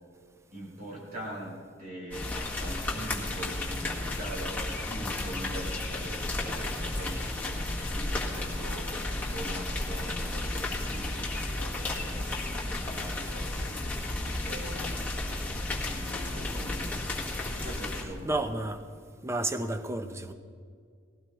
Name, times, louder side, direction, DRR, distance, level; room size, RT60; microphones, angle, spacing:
voice 1, 0.5-15.1 15.8-17.2 17.6-18.4, right 1 dB, 45° right, 3.2 m, -42 dB
sound 1, 2.1-18.0, left 2 dB, 10° left, 1.7 m, -33 dB
voice 2, 18.2-18.8 19.2-20.3, right 2 dB, 15° right, 0.7 m, -31 dB
20.0 x 17.0 x 3.1 m
head